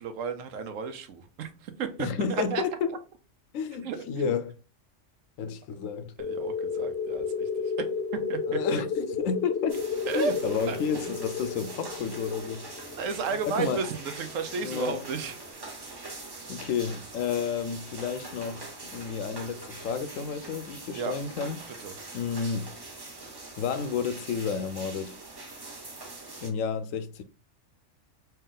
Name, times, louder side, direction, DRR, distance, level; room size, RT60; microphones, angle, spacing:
voice 1, 0.0-2.6 2.9-3.0 3.8-4.3 6.2-7.5 7.8-7.9 8.1-8.8 10.1-10.3 10.7-11.2 13.0-15.7 20.9-21.2 21.7-22.0, right 5 dB, 85° right, 1.0 m, -33 dB
voice 2, 2.0-2.9 3.5-4.5 5.4-6.1 8.5-9.8 10.1-12.7 13.5-13.8 14.6-15.0 16.1-21.6 22.1-22.7 23.6-25.2 26.4-27.2, left 6 dB, 90° left, 1.0 m, -31 dB
sound 1, 6.2-14.5, left 5 dB, 60° left, 0.8 m, -33 dB
sound 2, 9.7-26.5, right 2 dB, 25° right, 0.5 m, -43 dB
3.3 x 2.9 x 3.7 m
omnidirectional pair, 1.3 m